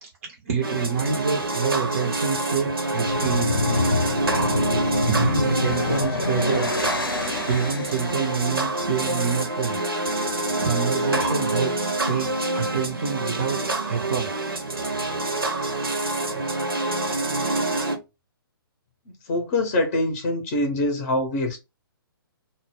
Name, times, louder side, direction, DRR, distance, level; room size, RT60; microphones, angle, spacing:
voice 1, 0.0-3.6 4.5-6.7 7.1-9.8 10.3-13.6 13.9-14.3 16.2-16.6, right 6 dB, 40° right, 0.5 m, -27 dB
sound 1, 0.6-18.0, right 2 dB, 70° right, 0.7 m, -26 dB
sound 2, 3.0-8.3, left 3 dB, 70° left, 0.6 m, -26 dB
voice 2, 19.3-21.6, left 2 dB, 30° left, 0.6 m, -24 dB
2.0 x 2.0 x 3.3 m
figure-of-eight pair, 125°, 12 cm